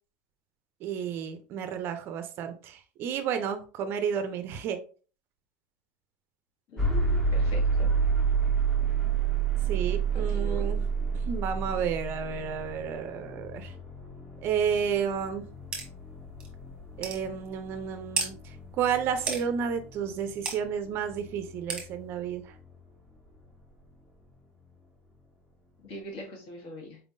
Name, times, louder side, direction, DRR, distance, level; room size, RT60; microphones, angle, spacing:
voice 1, 0.8-4.8 9.7-10.8 11.2-13.7 14.4-15.5 17.0-22.6, right 7 dB, 35° right, 8 dB, 0.5 m, -31 dB
voice 2, 6.7-7.9 10.1-10.7 25.8-27.0, equal, 60° left, 0 dB, 1.7 m, -42 dB
sound 1, 6.8-22.7, right 5 dB, 10° left, 0.7 m, -30 dB
sound 2, 15.7-15.9 16.4-16.5 17.0-17.2 18.2-18.3 19.3-19.4 20.5-20.6 21.7-21.9, right 4 dB, 10° right, 1.1 m, -31 dB
4.3 x 3.6 x 2.6 m, 0.38 s
supercardioid pair, 165°, 6 cm